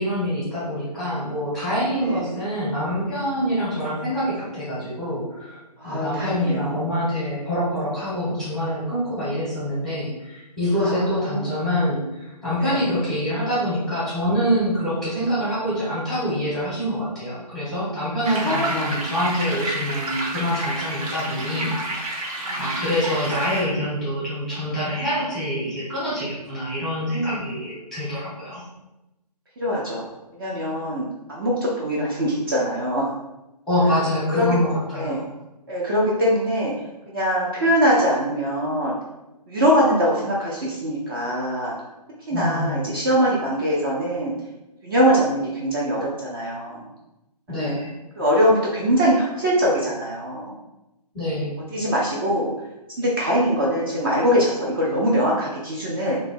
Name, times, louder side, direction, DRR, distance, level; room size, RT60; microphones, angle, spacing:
voice 1, 0.0-5.6 5.8-22.1 22.6-28.6 33.7-35.3 42.3-42.9 47.5-47.9 51.1-51.5, equal, ahead, -10 dB, 0.9 m, -25 dB
voice 2, 5.8-6.8 7.1-7.3 10.8-11.5 12.6-12.9 18.4-18.8 22.4-22.8 29.6-30.1 30.3-33.0 34.3-34.5 34.9-35.2 35.7-36.7 37.1-39.0 39.5-41.7 42.3-44.3 44.8-46.9 47.5-47.7 48.2-50.6 51.7-52.5 53.0-56.2, equal, 35° right, -4 dB, 0.6 m, -22 dB
sound 1, 18.2-23.6, right 2 dB, 55° right, 0.9 m, -30 dB
3.0 x 2.3 x 4.2 m, 0.97 s
hypercardioid pair, 155°, 21 cm